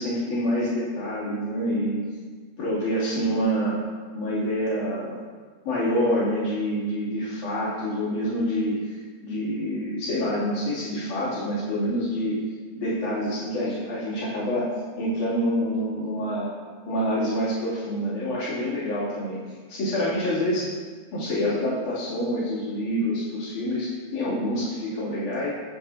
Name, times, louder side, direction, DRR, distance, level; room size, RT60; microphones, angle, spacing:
voice 1, 0.0-2.1 2.6-3.8 4.1-5.2 5.6-12.4 12.8-14.7 15.0-16.5 16.9-19.4 19.7-20.7 21.1-25.5, equal, 50° left, -9 dB, 4.0 m, -27 dB
15.0 x 5.3 x 2.8 m, 1.5 s
omnidirectional pair, 4.7 m